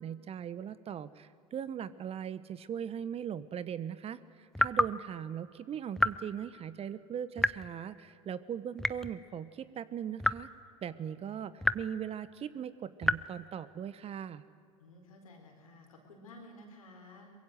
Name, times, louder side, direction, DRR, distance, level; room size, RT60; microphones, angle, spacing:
voice 1, 0.0-10.5 10.8-14.4, right 8 dB, 35° right, 16 dB, 1.1 m, -39 dB
sound 1, 4.6-5.0 6.0-6.2 7.4-7.7 8.8-9.2 10.2-10.5 11.6-11.9 13.0-13.3, left 1 dB, ahead, 0.7 m, -29 dB
voice 2, 14.8-17.3, left 1 dB, 80° left, 2 dB, 4.7 m, -53 dB
24.0 x 22.0 x 8.0 m, 2.4 s
hypercardioid pair, 75°, 18 cm